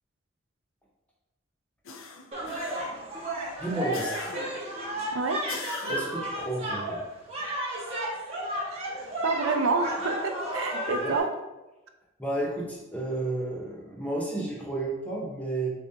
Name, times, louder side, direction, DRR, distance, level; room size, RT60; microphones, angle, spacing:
sound 1, 1.9-3.1 3.9-4.7 5.5-6.3, left 3 dB, 90° left, 0.5 m, -39 dB
sound 2, 2.3-11.2, right 1 dB, 30° right, 1.2 m, -33 dB
voice 1, 3.6-4.2 5.9-7.0 10.9-11.1 12.2-15.7, right 2 dB, 5° left, -3 dB, 0.9 m, -32 dB
voice 2, 9.2-11.3, right 4 dB, 80° right, 6 dB, 0.5 m, -28 dB
7.1 x 2.4 x 2.8 m, 1.1 s
head